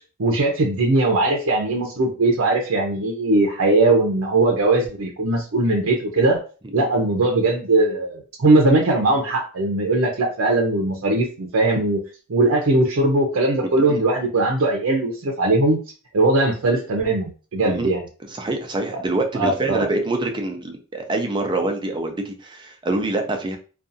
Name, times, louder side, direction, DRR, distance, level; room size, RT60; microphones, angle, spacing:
voice 1, 0.2-6.4 6.7-12.0 12.3-15.8 16.1-18.0 19.3-19.9, right 2 dB, 85° right, 0 dB, 0.5 m, -20 dB
voice 2, 18.3-23.6, right 2 dB, 20° right, 4 dB, 0.5 m, -25 dB
2.6 x 2.3 x 2.5 m, 0.36 s
head